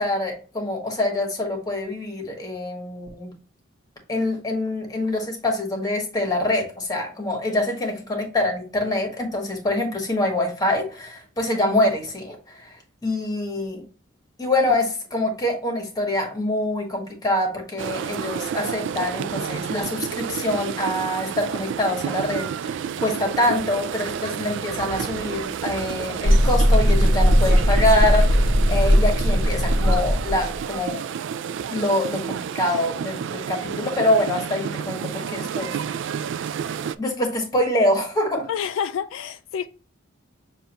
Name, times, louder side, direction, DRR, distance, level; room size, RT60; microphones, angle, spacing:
voice 1, 0.0-3.3 4.1-13.8 14.4-31.0 31.7-35.7 37.0-38.5, left 1 dB, 20° left, 1.3 m, -25 dB
sound 1, 17.8-37.0, right 8 dB, 65° right, 0.3 m, -30 dB
sound 2, 26.2-30.6, equal, 85° right, 1.2 m, -18 dB
voice 2, 38.5-39.7, left 8 dB, 75° left, 0.3 m, -29 dB
6.7 x 2.5 x 2.9 m
head